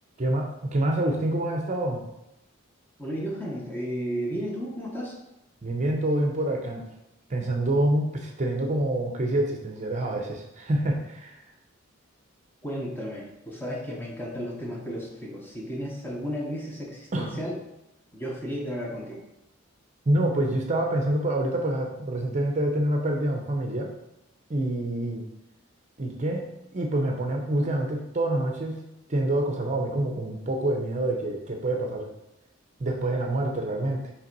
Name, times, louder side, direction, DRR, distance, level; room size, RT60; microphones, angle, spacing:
voice 1, 0.2-2.0 5.6-6.9 7.3-11.4 17.1-17.3 20.1-23.9 24.5-25.3 26.0-26.5 26.7-28.8 29.1-32.1 32.8-34.0, right 1 dB, 35° right, 2 dB, 0.6 m, -26 dB
voice 2, 3.0-5.2 12.6-17.6 18.1-19.2, equal, 10° left, -1 dB, 0.9 m, -33 dB
5.6 x 3.4 x 5.3 m, 0.89 s
head